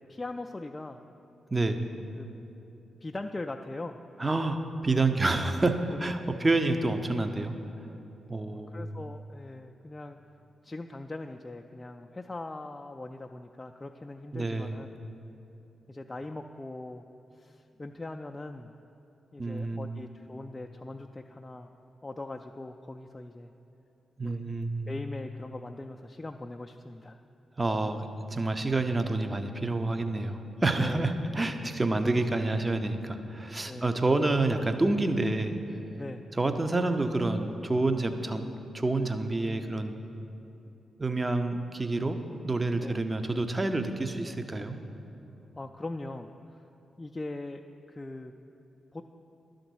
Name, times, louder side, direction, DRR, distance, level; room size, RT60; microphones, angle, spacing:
voice 1, 0.1-1.0 2.2-2.3 3.0-4.0 5.9-6.3 8.5-10.2 10.6-14.9 15.9-17.0 17.4-18.7 19.3-21.7 22.0-23.5 24.2-24.5 24.9-27.2 30.8-31.1 33.7-34.0 36.0-36.2 42.8-42.9 45.6-46.6 47.0-47.6 47.9-48.3 48.9-49.0, left 2 dB, 25° left, 3 dB, 0.3 m, -40 dB
voice 2, 4.2-7.5 8.3-8.8 14.3-14.7 19.4-20.0 24.2-24.9 27.6-35.6 36.4-38.5 38.7-40.0 41.0-42.2 42.4-44.8, right 2 dB, 30° right, 7 dB, 0.7 m, -28 dB
11.5 x 3.9 x 6.3 m, 2.9 s
hypercardioid pair, 40°, 0 cm